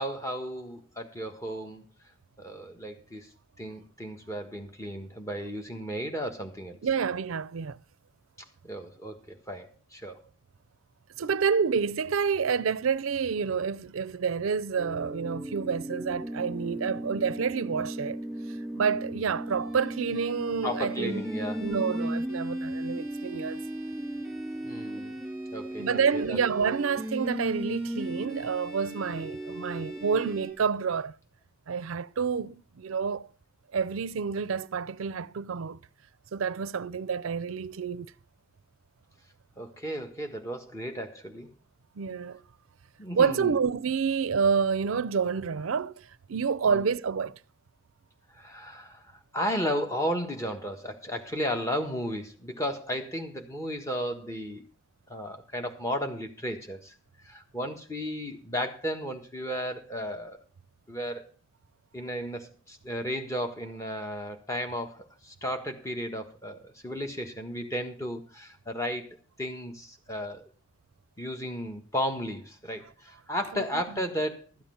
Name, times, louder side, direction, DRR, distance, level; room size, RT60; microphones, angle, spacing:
voice 1, 0.0-1.8 2.4-3.3 3.6-6.8 8.6-10.2 20.6-21.7 24.6-25.2 25.5-26.4 39.6-41.5 43.0-43.5 46.6-46.8 48.3-54.6 55.1-56.9 57.2-60.4 60.9-61.3 61.9-70.5 71.2-74.6, equal, 15° left, 1.4 m, -34 dB
voice 2, 6.8-7.8 11.2-18.2 18.7-21.2 21.6-23.6 25.8-31.1 31.7-33.3 33.7-35.8 36.3-38.1 42.0-42.4 43.1-47.4 73.5-74.0, right 6 dB, 90° right, 0.5 m, -28 dB
sound 1, 14.8-30.5, right 1 dB, ahead, 3.0 m, -36 dB
13.0 x 8.7 x 5.6 m
head